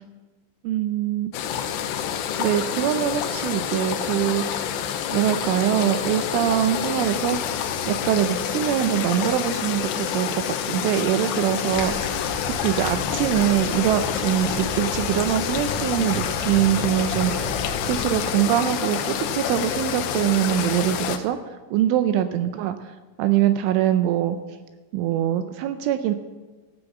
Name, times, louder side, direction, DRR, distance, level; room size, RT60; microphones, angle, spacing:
voice 1, 0.7-1.3 2.4-4.7 5.1-7.6 7.9-12.2 12.6-17.5 17.9-21.4 21.7-22.9 23.2-24.4 24.9-26.1, right 11 dB, 80° right, 9 dB, 2.9 m, -23 dB
sound 1, 1.3-21.2, left 9 dB, 80° left, 2.7 m, -28 dB
sound 2, 11.7-18.2, left 2 dB, 60° left, 3.9 m, -33 dB
15.0 x 6.7 x 7.2 m, 1.3 s
omnidirectional pair, 5.8 m